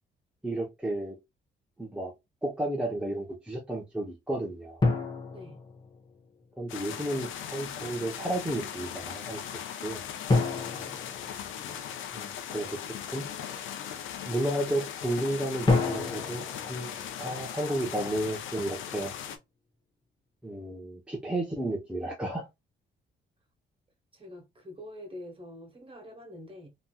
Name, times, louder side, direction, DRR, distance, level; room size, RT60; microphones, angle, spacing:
voice 1, 0.4-1.2 1.8-2.1 2.4-4.8 6.6-9.4 9.8-10.0 12.1-12.8 13.1-13.6 14.3-16.4 16.7-16.9 17.2-19.1 20.4-22.5, right 1 dB, 5° right, 0.8 m, -32 dB
sound 1, 4.8-6.4 10.3-12.2 15.7-17.9, left 3 dB, 20° left, 1.0 m, -30 dB
sound 2, 6.7-19.4, left 9 dB, 80° left, 0.6 m, -39 dB
voice 2, 24.1-26.7, left 1 dB, 25° right, 1.4 m, -46 dB
3.4 x 2.9 x 2.3 m
cardioid pair, 90°, 20 cm